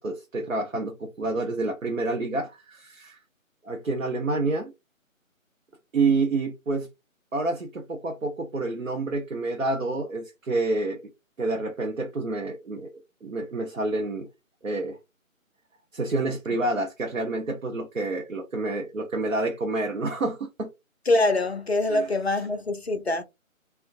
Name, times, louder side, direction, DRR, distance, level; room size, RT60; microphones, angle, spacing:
voice 1, 0.0-3.2 3.6-4.7 5.9-6.9 7.3-11.0 11.4-12.9 13.2-14.3 14.6-15.0 15.9-20.7 21.9-22.1, right 2 dB, 65° right, 0.7 m, -28 dB
voice 2, 21.1-23.2, left 2 dB, 50° left, 0.5 m, -24 dB
2.4 x 2.2 x 2.5 m
figure-of-eight pair, 160°, 41 cm